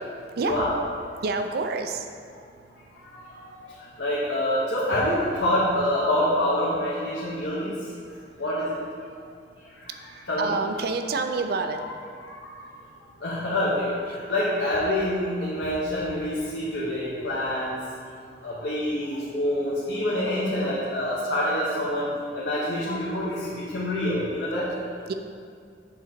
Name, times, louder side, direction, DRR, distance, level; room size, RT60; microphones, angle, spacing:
voice 1, 0.4-0.7 3.0-3.7 4.0-7.7 8.4-8.8 9.8-9.9 10.3-10.5 12.2-12.6 13.2-17.8 18.4-24.7, left 1 dB, 90° left, -8 dB, 1.1 m, -26 dB
voice 2, 1.2-2.1 10.4-11.8 25.1-25.2, right 4 dB, 60° right, 6 dB, 0.4 m, -27 dB
7.9 x 3.8 x 4.4 m, 2.2 s
head